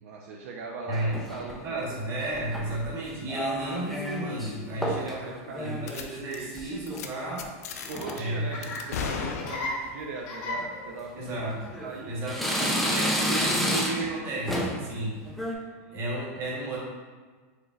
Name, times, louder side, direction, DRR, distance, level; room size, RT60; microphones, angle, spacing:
voice 1, 0.0-2.0 4.7-5.9 7.9-11.5 11.8-12.2 12.6-13.2 15.8-16.1, right 3 dB, 70° right, -1 dB, 0.5 m, -40 dB
sound 1, 0.9-1.6 2.3-2.9 3.3-4.5 4.8-5.2 5.5-7.5 7.8-8.2 8.8-9.1 9.5-9.6 10.5-10.6 11.3-11.9 12.3-14.2 14.5-14.9 15.2-15.5, equal, ahead, 0.4 m, -31 dB
voice 2, 1.6-5.3 5.6-7.5 8.1-8.7 11.1-11.6 12.1-15.5 15.9-16.8, right 1 dB, 35° right, -4 dB, 1.1 m, -33 dB
sound 2, 5.9-6.0 6.3-6.6 6.9-7.1 7.4-8.2 8.6-10.0, left 6 dB, 90° left, 0.4 m, -35 dB
Laughter, 7.9-15.4, left 1 dB, 40° left, 1.0 m, -40 dB
4.7 x 3.2 x 2.4 m, 1.5 s
supercardioid pair, 145°, 8 cm